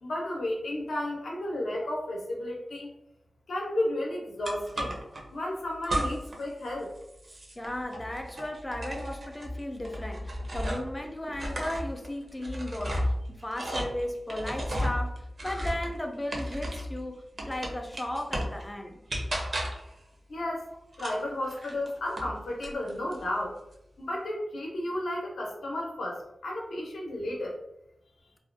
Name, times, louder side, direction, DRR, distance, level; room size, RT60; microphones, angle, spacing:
voice 1, 0.0-2.9 3.5-4.9 5.3-6.9 20.3-20.7 21.0-23.5 24.0-27.6, left 1 dB, 90° left, -1 dB, 0.6 m, -33 dB
sound 1, 4.4-5.2 5.8-6.4 6.7-11.0 11.3-17.0 17.4-18.6 19.1-19.9 20.9-22.3 22.6-23.2, equal, 45° right, 0.5 m, -34 dB
voice 2, 7.6-13.0 13.3-19.0, left 1 dB, 15° left, 3 dB, 0.3 m, -35 dB
2.4 x 2.1 x 2.5 m, 0.83 s
wide cardioid pair, 115°, 0 cm